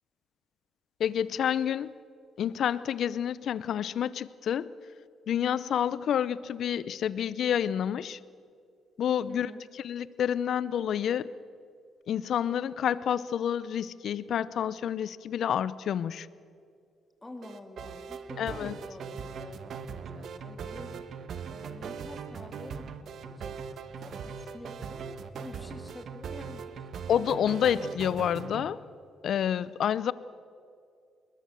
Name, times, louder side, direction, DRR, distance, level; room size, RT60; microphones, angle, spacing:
voice 1, 1.0-1.9 2.4-4.7 5.3-8.2 9.0-9.5 9.8-11.3 12.1-16.3 18.4-18.7 27.1-28.8 29.2-30.1, left 9 dB, 65° left, 18 dB, 0.7 m, -29 dB
voice 2, 9.3-9.7 17.2-20.9 21.5-23.5 23.9-26.9, left 1 dB, 15° left, 5 dB, 3.0 m, -47 dB
sound 1, 17.4-28.7, right 6 dB, 65° right, 1.4 m, -40 dB
22.0 x 20.0 x 7.7 m, 2.3 s
cardioid pair, 90°, 0 cm